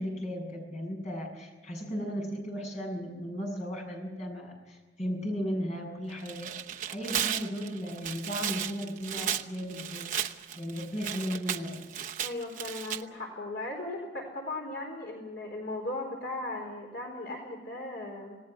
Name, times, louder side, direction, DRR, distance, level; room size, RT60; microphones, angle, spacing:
voice 1, 0.0-11.8, equal, 40° left, 0 dB, 7.3 m, -36 dB
Tearing, 6.1-13.0, right 9 dB, 45° right, 0.9 m, -35 dB
voice 2, 12.2-18.4, left 2 dB, 65° left, 1 dB, 4.1 m, -37 dB
27.5 x 18.5 x 6.2 m, 1.3 s
head